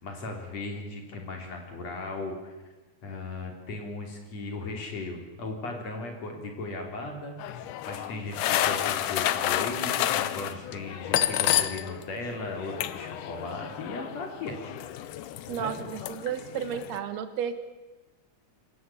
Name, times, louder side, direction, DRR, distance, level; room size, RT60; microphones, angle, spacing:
voice 1, 0.0-2.5 3.0-7.4 7.9-14.6 15.5-15.9, left 2 dB, 60° left, 3 dB, 4.3 m, -37 dB
sound 1, 7.4-12.0 12.3-17.0, left 12 dB, 90° left, 2.5 m, -30 dB
voice 2, 15.5-17.6, right 8 dB, 65° right, 10 dB, 2.5 m, -32 dB
25.5 x 14.0 x 8.5 m, 1.2 s
omnidirectional pair, 3.5 m